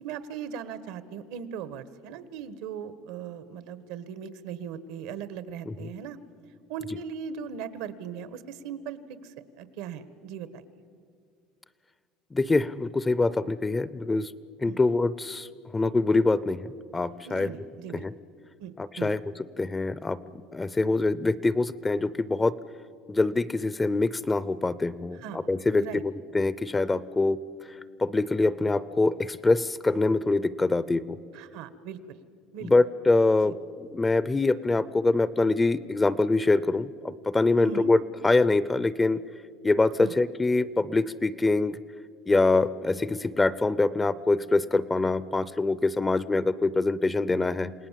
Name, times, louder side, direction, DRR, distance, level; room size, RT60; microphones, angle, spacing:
voice 1, 0.0-6.2 6.7-10.6 14.7-14.8 17.2-18.0 18.6-19.1 25.1-25.4 25.8-26.0 31.3-32.2 32.5-32.7 33.4-33.6 37.6-37.9 40.0-40.1, right 7 dB, 80° right, 14 dB, 1.3 m, -39 dB
voice 2, 12.3-14.3 14.6-15.5 15.7-16.7 16.9-17.5 18.8-19.2 19.6-20.2 20.5-22.5 23.1-27.4 28.0-31.0 32.6-39.2 39.6-41.8 42.3-47.7, left 3 dB, 15° left, 18 dB, 0.5 m, -24 dB
28.0 x 18.5 x 7.4 m, 2.2 s
cardioid pair, 145°, 0 cm